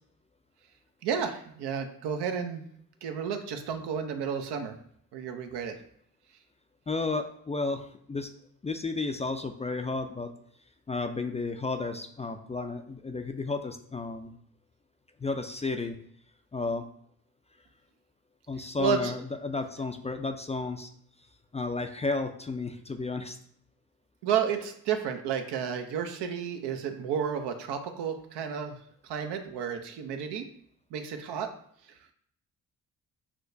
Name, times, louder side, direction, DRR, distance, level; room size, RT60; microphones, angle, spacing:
voice 1, 1.0-2.7 3.0-4.7 5.1-5.8 18.8-19.1 24.2-28.8 29.0-30.5 30.9-31.5, right 7 dB, 80° right, 6 dB, 0.6 m, -31 dB
voice 2, 6.9-8.3 8.6-10.3 10.9-14.4 15.2-16.0 16.5-16.8 18.5-20.9 21.5-23.4, left 3 dB, 20° left, 6 dB, 0.3 m, -32 dB
5.9 x 2.1 x 2.6 m, 0.66 s
supercardioid pair, 55°, 40 cm